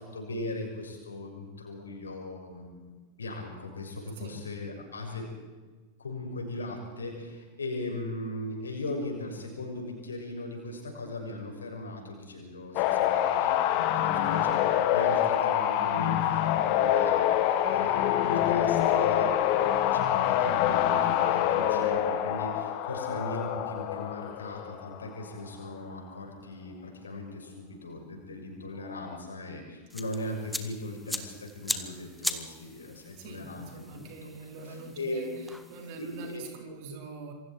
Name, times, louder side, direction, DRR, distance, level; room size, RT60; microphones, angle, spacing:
voice 1, 0.0-2.8 3.2-5.3 6.0-17.3 17.7-34.3 34.7-35.2 36.0-36.4, left 2 dB, 70° left, 2 dB, 6.3 m, -38 dB
sound 1, 12.8-25.1 28.9-29.2, left 11 dB, 45° left, 1.8 m, -26 dB
sound 2, 29.9-36.4, left 1 dB, ahead, 1.8 m, -39 dB
voice 2, 33.2-35.3 35.7-37.3, right 4 dB, 50° right, 2 dB, 4.8 m, -43 dB
27.5 x 24.0 x 4.6 m, 1.3 s
figure-of-eight pair, 90°, 0 cm